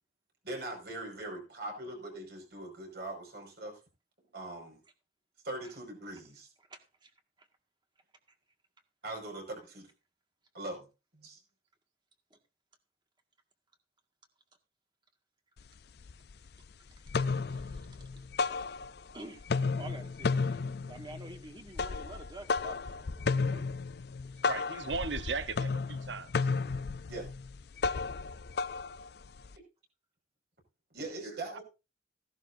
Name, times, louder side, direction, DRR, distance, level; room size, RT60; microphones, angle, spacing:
voice 1, 0.4-3.8 4.3-4.8 5.4-6.5 9.0-9.9 10.5-10.9 11.1-11.4 27.1-27.3 30.9-31.6, right 2 dB, 60° right, 1 dB, 5.5 m, -41 dB
voice 2, 6.6-7.1 7.4-7.5 12.3-12.4 17.5-17.9 19.1-19.5 19.8-20.6 20.9-23.8 24.2-24.5 31.0-31.2, right 1 dB, 25° right, 5 dB, 1.9 m, -49 dB
sound 1, 15.6-15.7 16.0-16.6 16.9-19.1 19.4-29.5, left 4 dB, 60° left, 0.5 m, -33 dB
voice 3, 24.4-26.3 31.5-31.6, right 4 dB, 80° right, 12 dB, 1.0 m, -36 dB
16.0 x 11.5 x 2.7 m, 0.29 s
head